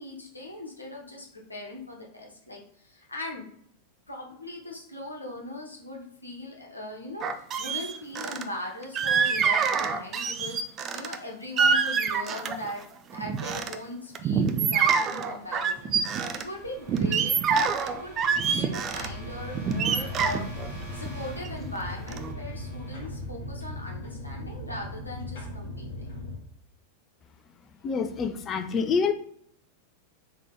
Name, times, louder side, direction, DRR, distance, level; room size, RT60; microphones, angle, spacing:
voice 1, 0.0-3.5 4.1-12.8 13.1-18.2 18.4-20.5 20.9-26.2, left 1 dB, 80° left, -1 dB, 1.1 m, -39 dB
sound 1, 7.2-8.4 8.9-11.2 11.6-12.7 13.1-13.8 14.1-16.4 16.9-19.1 19.5-21.8 22.1-22.3, right 6 dB, 30° right, 0.4 m, -26 dB
sound 2, 14.4-24.2, right 1 dB, 55° right, 1.3 m, -49 dB
sound 3, 18.9-26.4, left 1 dB, 55° left, 1.1 m, -38 dB
voice 2, 27.8-29.1, left 5 dB, 25° left, 8 dB, 0.5 m, -26 dB
3.8 x 3.0 x 3.7 m, 0.65 s
figure-of-eight pair, 90°, 0 cm